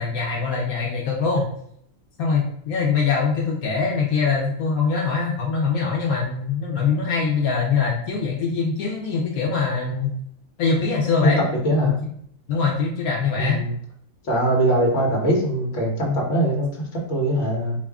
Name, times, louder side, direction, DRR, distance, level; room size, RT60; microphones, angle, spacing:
voice 1, 0.0-1.5 2.2-10.1 10.6-11.4 11.8-11.9 12.5-13.6, left 5 dB, 80° left, -3 dB, 1.2 m, -23 dB
voice 2, 11.6-12.0 13.4-13.7 14.3-17.8, right 1 dB, 55° left, -3 dB, 1.5 m, -21 dB
4.8 x 2.5 x 3.5 m, 0.66 s
omnidirectional pair, 1.5 m